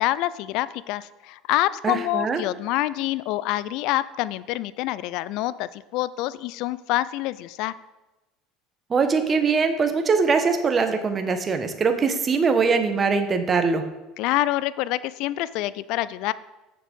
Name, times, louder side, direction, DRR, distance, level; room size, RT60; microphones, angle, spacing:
voice 1, 0.0-7.7 14.2-16.3, left 15 dB, 65° left, 18 dB, 0.4 m, -26 dB
voice 2, 1.8-2.4 8.9-13.8, right 5 dB, 30° right, 7 dB, 1.2 m, -22 dB
7.4 x 6.6 x 5.4 m, 1.0 s
hypercardioid pair, 80°, 0 cm